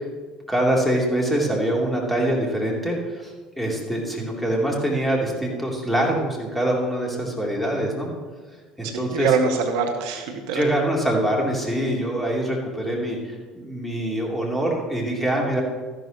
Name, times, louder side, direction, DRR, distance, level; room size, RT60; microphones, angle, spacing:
voice 1, 0.5-8.1 8.8-9.3 10.5-15.6, right 1 dB, 5° left, -2 dB, 3.4 m, -24 dB
voice 2, 8.8-10.6, right 5 dB, 65° right, 5 dB, 1.0 m, -24 dB
13.5 x 11.5 x 3.1 m, 1.4 s
figure-of-eight pair, 65°, 2 cm